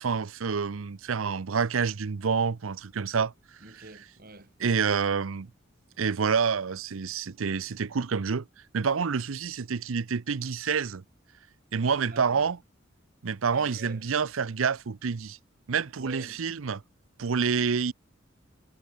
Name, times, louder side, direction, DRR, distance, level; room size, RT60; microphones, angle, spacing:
voice 1, 0.0-3.3 4.6-5.5 6.0-8.4 8.7-11.0 11.7-12.6 13.2-15.4 15.7-16.8 17.2-17.9, right 5 dB, 90° right, 0.6 m, -28 dB
voice 2, 3.6-5.1 12.0-12.5 13.5-14.1 16.0-16.4, right 2 dB, 45° right, 3.4 m, -47 dB
head